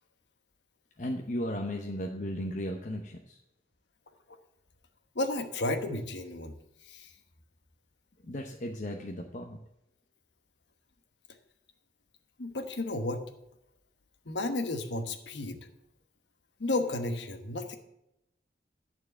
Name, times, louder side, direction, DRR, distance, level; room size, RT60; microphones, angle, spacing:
voice 1, 1.0-3.4 8.2-9.6, left 1 dB, 45° left, 2 dB, 0.7 m, -35 dB
voice 2, 5.1-6.5 6.9-7.1 12.4-13.2 14.3-15.6 16.6-17.8, left 2 dB, 85° left, 7 dB, 1.1 m, -32 dB
11.0 x 4.6 x 7.7 m, 0.85 s
head